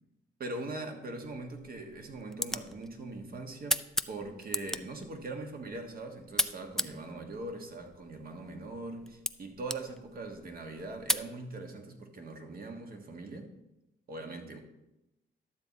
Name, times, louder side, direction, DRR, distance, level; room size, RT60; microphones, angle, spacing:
voice 1, 0.4-13.5 14.1-14.6, right 2 dB, 50° right, 4 dB, 1.5 m, -41 dB
sound 1, 1.2-11.3, left 1 dB, ahead, 0.3 m, -38 dB
12.0 x 7.4 x 4.1 m, 0.94 s
cardioid pair, 90°, 20 cm